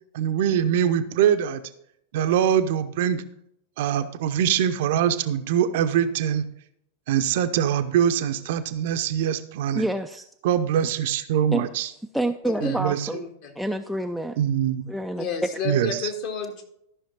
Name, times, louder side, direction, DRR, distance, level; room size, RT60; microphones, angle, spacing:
voice 1, 0.1-1.6 2.1-3.2 3.8-6.4 7.1-9.9 10.4-11.9 12.6-13.2 14.4-14.9 15.6-16.1, right 9 dB, 50° right, 9 dB, 0.7 m, -23 dB
voice 2, 9.8-10.2 11.5-11.6 12.1-13.2 13.6-14.4 14.9-15.3, right 1 dB, ahead, 9 dB, 0.4 m, -27 dB
voice 3, 12.4-12.8 13.1-13.5 15.2-16.6, left 5 dB, 45° left, 4 dB, 1.8 m, -31 dB
13.5 x 5.8 x 4.0 m, 0.75 s
figure-of-eight pair, 90°, 0 cm